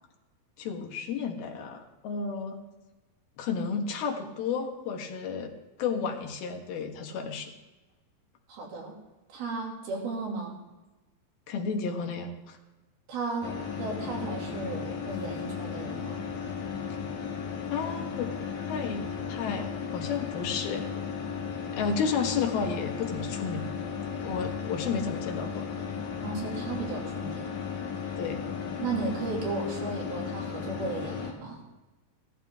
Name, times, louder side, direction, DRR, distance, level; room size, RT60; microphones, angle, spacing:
voice 1, 0.6-2.6 3.4-5.5 5.8-7.5 11.5-12.6 17.7-18.3 18.7-20.9 21.7-23.7 24.2-25.7 28.2-28.4, left 5 dB, 85° left, 3 dB, 3.4 m, -32 dB
voice 2, 8.5-9.0 9.3-10.6 13.1-16.2 26.2-27.5 28.8-31.6, right 4 dB, 80° right, -1 dB, 4.5 m, -35 dB
sound 1, 13.4-31.3, left 6 dB, 60° left, 2.7 m, -35 dB
17.0 x 13.5 x 3.6 m, 1.1 s
omnidirectional pair, 4.2 m